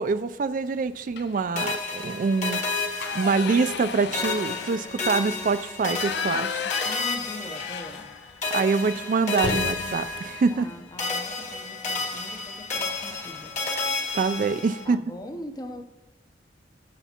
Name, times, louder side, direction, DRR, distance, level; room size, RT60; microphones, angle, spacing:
voice 1, 0.0-2.6 3.1-6.6 8.5-10.7 14.1-15.0, right 4 dB, 45° right, 12 dB, 0.3 m, -25 dB
sound 1, 1.1-1.5 1.9-2.1 2.4-8.5 8.8-8.9 9.3-11.4 12.8-13.0 13.4-13.6 13.9-14.5, left 6 dB, 60° left, 0.5 m, -35 dB
sound 2, 1.6-3.9 4.1-8.1 8.4-10.7 11.0-14.8, left 3 dB, 40° left, 1.5 m, -31 dB
voice 2, 6.8-8.2 10.5-13.6 14.8-15.8, left 1 dB, 20° left, 7 dB, 0.7 m, -41 dB
20.0 x 7.1 x 2.9 m, 1.1 s
head